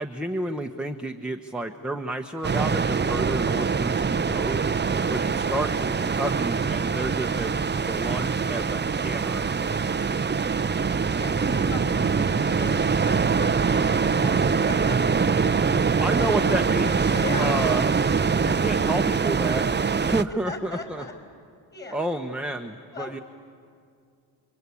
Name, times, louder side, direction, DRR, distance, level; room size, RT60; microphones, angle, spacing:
voice 1, 0.0-4.6 5.1-7.6 7.9-9.4 16.0-17.8 18.4-19.7 20.0-21.0 21.9-23.2, right 1 dB, ahead, 4 dB, 1.1 m, -30 dB
sound 1, 2.4-20.2, right 5 dB, 25° right, 0.7 m, -24 dB
voice 2, 11.2-12.3 12.6-13.9 14.2-14.3 14.7-15.0 17.1-17.9 20.5-21.1 21.7-22.0 22.9-23.1, left 3 dB, 20° left, 6 dB, 5.7 m, -38 dB
sound 2, 11.4-17.5, left 2 dB, 65° left, 3.7 m, -40 dB
28.0 x 23.5 x 8.5 m, 2.3 s
cardioid pair, 70°, 44 cm